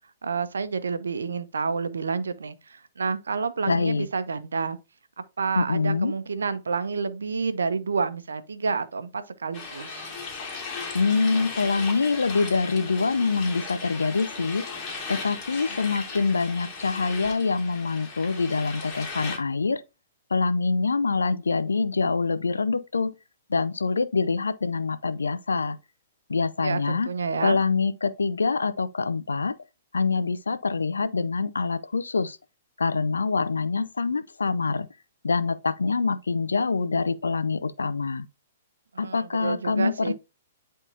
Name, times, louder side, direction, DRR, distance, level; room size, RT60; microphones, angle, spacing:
voice 1, 0.2-4.8 5.4-10.1 26.6-27.6 38.9-40.1, right 5 dB, 70° right, 0.8 m, -29 dB
voice 2, 3.7-4.1 5.6-6.1 10.9-14.7 15.1-19.8 20.3-23.1 23.5-25.8 26.3-27.1 27.4-29.5 29.9-32.4 32.8-34.9 35.2-38.3 39.0-40.1, left 4 dB, 75° left, 0.6 m, -25 dB
sound 1, 9.5-19.4, left 4 dB, 25° left, 3.0 m, -37 dB
10.5 x 3.7 x 2.7 m
figure-of-eight pair, 115°, 0 cm